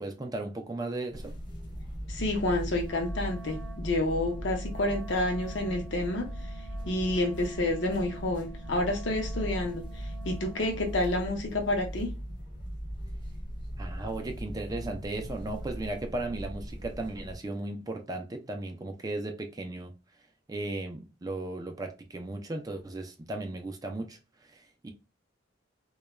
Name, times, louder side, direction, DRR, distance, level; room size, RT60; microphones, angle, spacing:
voice 1, 0.0-1.3 13.8-19.9 20.5-24.9, right 2 dB, 20° right, 0.4 m, -36 dB
sound 1, 1.1-17.4, equal, 25° left, 0.6 m, -39 dB
voice 2, 2.1-6.3 6.9-12.1, left 1 dB, 65° left, 0.7 m, -29 dB
Wind instrument woodwind instrument, 2.8-11.2, right 7 dB, 80° right, 0.6 m, -49 dB
2.3 x 2.1 x 3.0 m
head